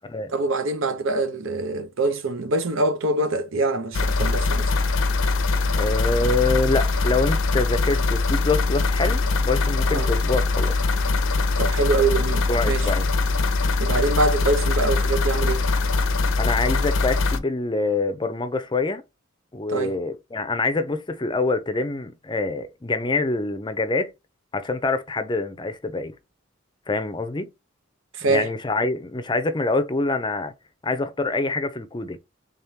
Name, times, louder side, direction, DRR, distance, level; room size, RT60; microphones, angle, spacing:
voice 1, 0.3-4.7 9.9-10.1 11.6-12.9 13.8-15.6 19.7-19.9 28.1-28.5, right 2 dB, 75° right, 0.7 m, -24 dB
sound 1, 3.9-17.4, left 3 dB, 75° left, 0.6 m, -22 dB
voice 2, 5.7-10.8 12.5-13.1 16.4-19.0 19.5-24.1 24.5-26.1 26.9-27.5 28.2-30.5 30.8-32.2, left 3 dB, 20° left, 0.5 m, -25 dB
3.5 x 3.5 x 2.8 m
head